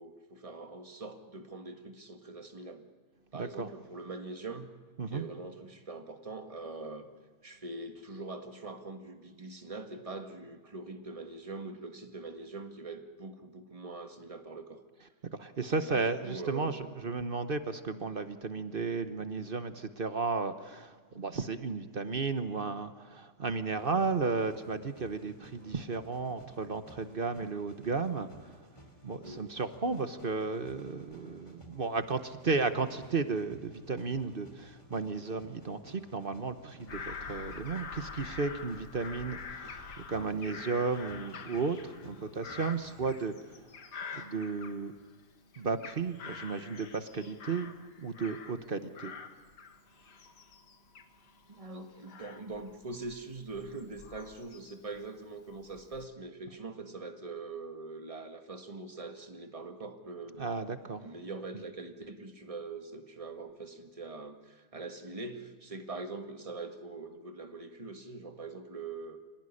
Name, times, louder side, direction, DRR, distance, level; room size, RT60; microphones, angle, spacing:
voice 1, 0.0-2.8 3.3-4.7 5.1-7.1 7.4-14.8 15.8-17.0 27.4-27.7 29.2-29.4 51.5-60.5 61.0-69.2, right 3 dB, 20° right, 5 dB, 1.8 m, -43 dB
voice 2, 3.3-3.7 5.0-5.2 15.4-28.3 29.0-43.3 44.1-44.9 45.6-47.7 48.0-49.1 60.4-61.0, right 4 dB, 40° right, 10 dB, 1.1 m, -34 dB
sound 1, 23.8-43.3, equal, 15° left, 3.3 m, -56 dB
Bird vocalization bird call bird song / Crow, 36.9-45.2 45.5-48.7 48.9-55.0 55.5-56.1, left 5 dB, 85° left, 2.2 m, -46 dB
26.5 x 18.0 x 9.9 m, 1.5 s
omnidirectional pair, 1.7 m